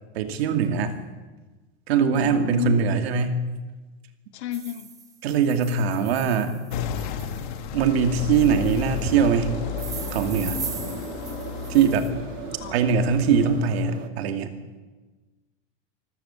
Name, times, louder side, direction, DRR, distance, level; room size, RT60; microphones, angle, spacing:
voice 1, 0.1-0.9 1.9-3.4 5.2-6.6 7.7-9.6 10.1-10.6 11.7-12.1 12.7-14.5, right 6 dB, 55° right, 7 dB, 2.5 m, -22 dB
voice 2, 2.1-2.8 4.3-4.9 11.0-11.2 12.6-12.8, left 12 dB, 65° left, 11 dB, 1.7 m, -32 dB
sound 1, 4.5-7.7 8.3-9.1 9.8-12.1, right 6 dB, 10° right, 0.7 m, -40 dB
sound 2, 6.7-13.6, left 8 dB, 40° left, 1.6 m, -33 dB
sound 3, 8.9-14.1, right 10 dB, 90° right, 1.9 m, -38 dB
25.5 x 14.0 x 8.4 m, 1.2 s
supercardioid pair, 180°, 36 cm